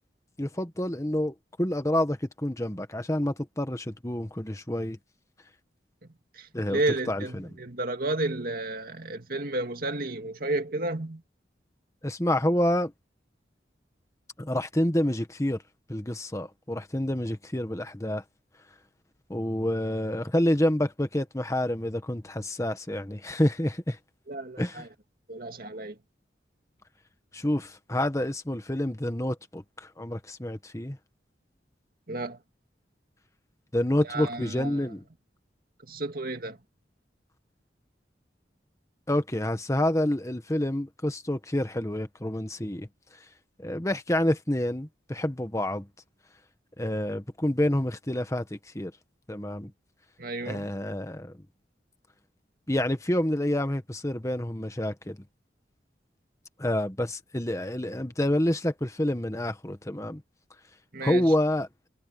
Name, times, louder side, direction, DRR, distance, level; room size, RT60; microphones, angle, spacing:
voice 1, 0.4-5.0 6.5-6.8 7.1-7.5 12.0-12.9 14.4-15.6 15.9-18.2 19.3-24.0 24.6-24.9 27.3-31.0 33.7-35.0 39.1-42.9 43.6-45.9 46.8-48.9 49.3-49.7 50.4-51.3 52.7-55.2 56.6-60.2 61.0-61.7, left 1 dB, 15° left, 1.4 m, -28 dB
voice 2, 6.3-11.2 24.3-24.9 25.3-26.0 32.1-32.4 34.0-34.9 35.8-36.6 50.2-50.7 60.9-61.3, right 2 dB, 55° right, 2.2 m, -32 dB
head